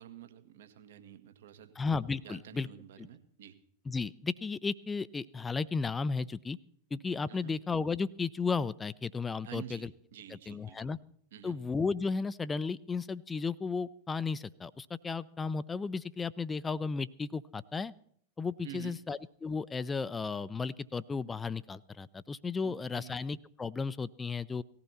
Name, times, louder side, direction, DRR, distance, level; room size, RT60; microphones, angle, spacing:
voice 1, 0.0-1.7 2.2-3.6 7.3-7.5 9.4-11.0 11.3-11.6 18.6-19.0 22.6-23.3, right 10 dB, 60° right, 8 dB, 1.6 m, -49 dB
voice 2, 1.8-2.7 3.0-3.1 3.9-6.6 6.9-9.9 10.3-11.0 11.4-17.9 18.4-24.6, left 4 dB, 15° left, 18 dB, 0.6 m, -34 dB
18.5 x 15.5 x 4.2 m, 0.63 s
figure-of-eight pair, 90°, 0 cm